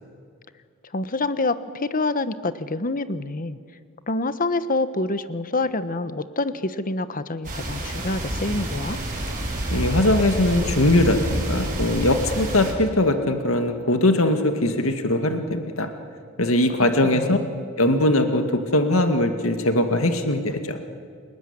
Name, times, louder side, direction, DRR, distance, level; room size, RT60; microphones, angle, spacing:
voice 1, 0.9-3.6 4.1-9.0 17.1-17.6, left 2 dB, 40° left, 12 dB, 1.2 m, -27 dB
sound 1, 7.4-12.7, right 1 dB, 40° right, 7.2 m, -28 dB
voice 2, 9.7-15.9 16.4-17.4 17.8-20.8, left 1 dB, 75° left, 7 dB, 2.2 m, -21 dB
29.5 x 20.0 x 9.9 m, 2.2 s
head